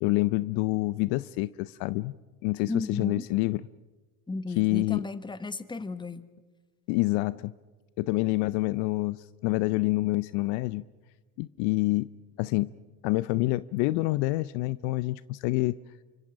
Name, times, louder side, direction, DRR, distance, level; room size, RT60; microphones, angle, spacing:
voice 1, 0.0-2.1 2.4-3.6 4.6-5.0 6.9-7.5 8.0-10.8 11.4-12.1 12.4-12.7 13.0-15.8, left 20 dB, 55° left, 18 dB, 0.6 m, -27 dB
voice 2, 2.7-3.2 4.3-6.3, left 3 dB, 10° left, 14 dB, 1.1 m, -34 dB
28.5 x 25.0 x 5.2 m, 1.3 s
hypercardioid pair, 75°, 48 cm